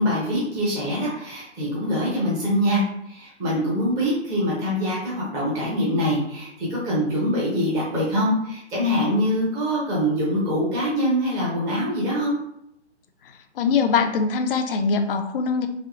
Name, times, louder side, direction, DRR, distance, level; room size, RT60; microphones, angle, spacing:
voice 1, 0.0-12.4, equal, 10° right, -6 dB, 0.6 m, -24 dB
voice 2, 13.2-15.7, left 5 dB, 50° left, 6 dB, 0.4 m, -23 dB
3.4 x 2.7 x 2.4 m, 0.76 s
hypercardioid pair, 145°, 35 cm